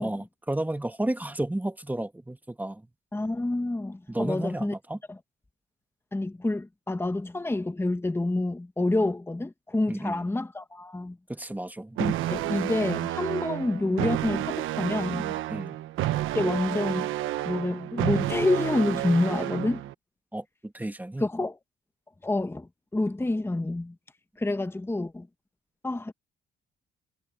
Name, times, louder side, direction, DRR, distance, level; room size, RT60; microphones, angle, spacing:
voice 1, 0.0-2.8 4.1-5.0 9.9-10.2 11.3-12.0 15.5-15.8 20.3-21.3, right 1 dB, 10° right, 2.2 m, -32 dB
voice 2, 3.1-4.7 5.1-5.2 6.1-11.2 12.0-15.4 16.3-17.1 17.4-19.8 21.2-21.5 22.2-23.9 24.4-25.3 25.8-26.1, left 2 dB, 10° left, 1.4 m, -28 dB
sound 1, 12.0-19.9, right 15 dB, 90° right, 1.1 m, -30 dB
cardioid pair, 90°, 20 cm